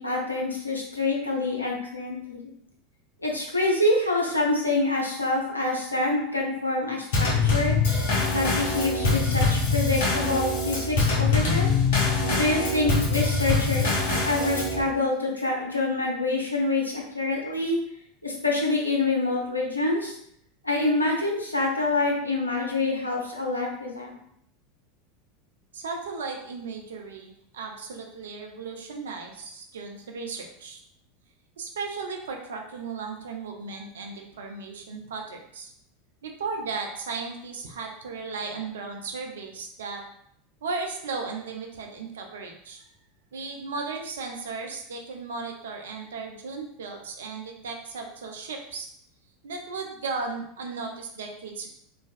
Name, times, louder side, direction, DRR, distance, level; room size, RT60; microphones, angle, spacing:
voice 1, 0.0-2.5 3.2-7.8 8.2-11.7 12.3-17.8 18.2-20.2 20.6-24.1, left 2 dB, 85° left, -1 dB, 0.5 m, -26 dB
Drum kit / Snare drum / Bass drum, 7.1-14.8, left 3 dB, 55° left, 1.1 m, -24 dB
voice 2, 25.7-30.8 31.6-35.7 36.2-40.0 40.6-42.8 43.3-48.9 49.4-51.7, right 4 dB, 65° right, 3 dB, 0.5 m, -35 dB
3.1 x 2.2 x 2.5 m, 0.70 s
figure-of-eight pair, 80°, 0 cm